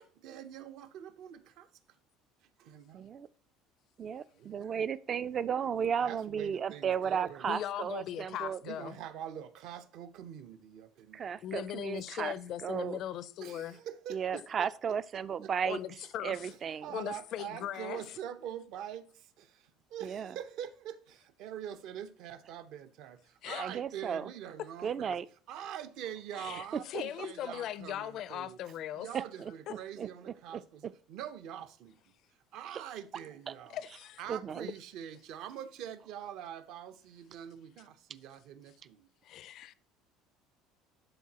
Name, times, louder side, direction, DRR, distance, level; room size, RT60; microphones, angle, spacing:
voice 1, 0.0-1.7 2.6-3.1 4.3-4.9 6.0-7.5 8.6-11.4 13.4-14.7 15.1-15.5 16.8-25.2 25.5-28.6 28.9-32.0 32.5-33.8 34.2-39.1, right 10 dB, 60° right, 0.7 m, -44 dB
voice 2, 2.9-3.3 4.0-8.6 11.1-12.3 12.6-13.0 14.1-15.8 16.2-17.0 20.0-20.3 23.6-24.3 24.8-25.3 26.7-26.8 29.1-29.5 30.0-30.6 32.7-32.8 33.5-33.6 34.3-34.7, right 7 dB, 30° right, 0.3 m, -34 dB
voice 3, 7.5-9.0 11.4-13.8 15.7-16.5 16.9-18.0 23.4-23.7 26.4-29.1 29.7-29.8 33.7-34.2 39.2-39.7, left 11 dB, 50° left, 0.4 m, -39 dB
12.0 x 4.0 x 2.8 m
cardioid pair, 150°, 0 cm